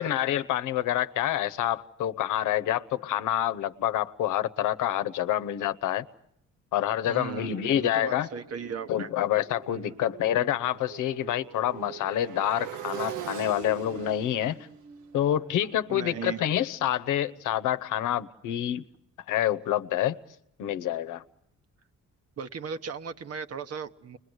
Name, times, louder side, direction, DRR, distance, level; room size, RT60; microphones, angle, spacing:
voice 1, 0.0-6.1 6.7-8.3 8.9-14.6 15.1-18.8 19.3-20.2 20.6-21.2, left 12 dB, 85° left, 0.9 m, -27 dB
voice 2, 7.0-9.1 9.7-10.0 15.9-16.4 22.4-24.2, right 6 dB, 55° right, 1.2 m, -37 dB
Motorcycle, 7.6-17.4, right 7 dB, 85° right, 1.3 m, -43 dB
29.5 x 21.5 x 8.0 m
cardioid pair, 90°, 30 cm